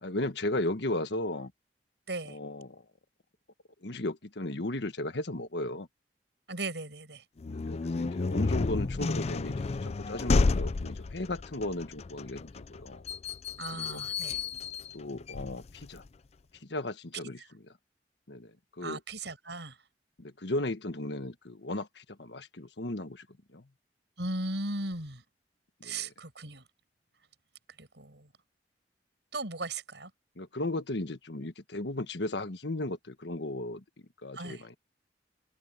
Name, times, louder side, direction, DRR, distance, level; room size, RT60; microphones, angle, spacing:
voice 1, 0.0-1.5 2.3-2.8 3.8-5.9 7.5-13.0 13.7-14.0 14.9-16.0 16.6-17.7 18.3-19.0 20.2-23.3 23.5-23.7 25.8-26.1 30.4-34.8, left 1 dB, 75° left, 1.4 m, -36 dB
voice 2, 2.1-2.4 6.5-7.2 13.6-14.4 18.8-19.7 24.2-25.2 25.8-26.6 27.8-28.3 29.3-30.1 34.3-34.6, right 2 dB, 75° right, 7.6 m, -37 dB
sound 1, 7.4-16.1, left 3 dB, 40° left, 0.4 m, -31 dB
head